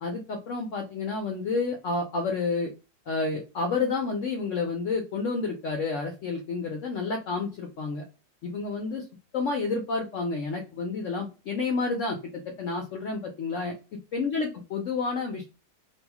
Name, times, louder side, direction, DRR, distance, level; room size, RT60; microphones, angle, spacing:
voice 1, 0.0-2.7 3.1-8.0 8.4-9.0 9.3-13.8 14.1-15.5, left 4 dB, 65° left, 3 dB, 0.8 m, -30 dB
3.0 x 2.7 x 2.2 m, 0.30 s
omnidirectional pair, 1.8 m